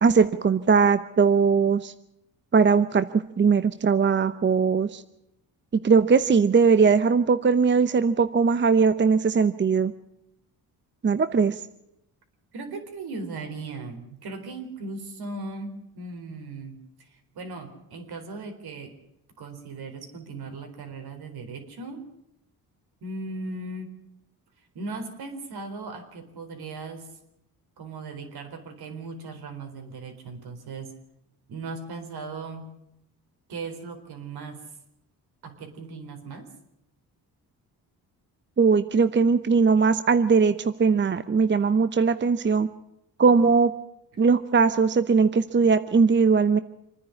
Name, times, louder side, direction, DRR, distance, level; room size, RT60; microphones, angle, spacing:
voice 1, 0.0-1.9 2.5-5.0 5.8-9.9 11.0-11.6 38.6-42.7 43.2-43.7 44.2-46.6, right 5 dB, 30° right, 12 dB, 0.8 m, -20 dB
voice 2, 12.5-18.9 19.4-22.1 23.0-23.9 24.7-27.1 27.8-30.9 31.5-32.7 33.5-34.6 35.4-36.5, right 3 dB, 70° right, 5 dB, 4.1 m, -38 dB
26.5 x 10.0 x 9.8 m, 0.82 s
cardioid pair, 95°, 39 cm